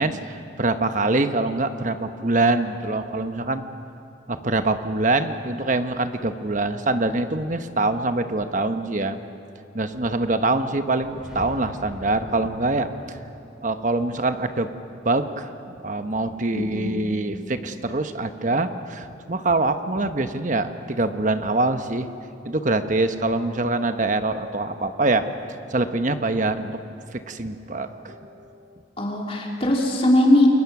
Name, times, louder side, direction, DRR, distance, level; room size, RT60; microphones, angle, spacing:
voice 1, 0.0-3.6 4.3-9.2 9.7-13.2 13.6-14.7 15.0-15.5 15.8-22.1 22.4-25.3 25.7-26.8 27.1-28.8, right 2 dB, 40° right, 8 dB, 1.0 m, -24 dB
sound 1, 10.8-15.6, equal, 5° right, 4.8 m, -43 dB
voice 2, 16.5-17.0 29.0-30.5, left 1 dB, 30° left, -1 dB, 3.2 m, -20 dB
28.5 x 22.0 x 6.1 m, 2.8 s
head